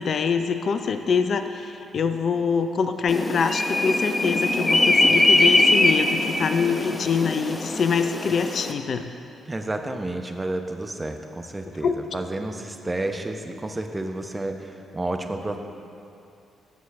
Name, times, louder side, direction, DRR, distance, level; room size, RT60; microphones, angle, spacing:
voice 1, 0.0-9.1 11.8-12.0, left 5 dB, 50° left, 8 dB, 0.4 m, -24 dB
sound 1, 3.1-8.7, left 2 dB, 20° left, 0.8 m, -22 dB
voice 2, 9.5-15.6, right 2 dB, 20° right, 5 dB, 0.9 m, -31 dB
15.5 x 6.6 x 3.5 m, 2.6 s
figure-of-eight pair, 40°, 0 cm